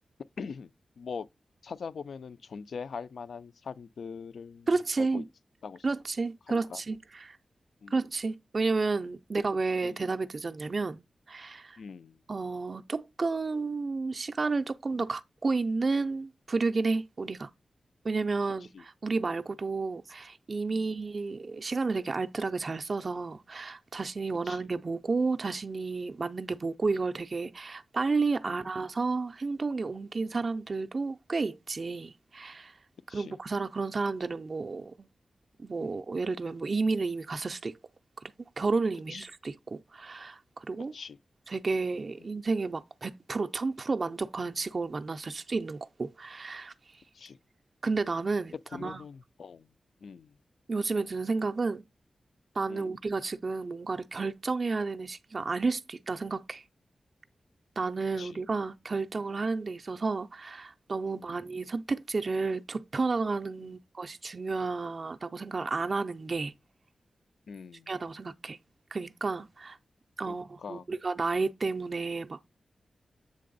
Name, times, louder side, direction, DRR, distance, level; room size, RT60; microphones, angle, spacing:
voice 1, 0.4-0.7 1.0-1.3 1.6-4.7 5.0-5.2 5.6-5.9 6.5-6.8 7.8-8.0 9.8-10.0 11.8-12.2 14.9-15.0 18.7-18.8 20.7-20.9 24.4-24.6 28.4-28.6 33.1-33.4 35.8-36.0 39.1-39.3 40.9-41.2 47.1-47.4 48.7-49.7 50.0-50.4 52.7-52.9 58.2-58.4 59.1-59.2 61.1-61.3 63.6-63.7 67.5-67.9 70.3-70.9, left 5 dB, 75° left, 0.3 m, -42 dB
voice 2, 4.7-5.2 5.8-7.4 7.9-11.8 12.3-17.5 18.0-32.8 33.1-35.1 35.6-37.8 38.4-40.9 41.5-46.7 47.8-49.0 50.7-51.8 52.6-56.6 57.8-66.5 67.9-68.6 68.9-69.8 70.2-72.5, right 3 dB, 40° right, 0.4 m, -31 dB
7.5 x 3.4 x 3.8 m
wide cardioid pair, 160°, 0 cm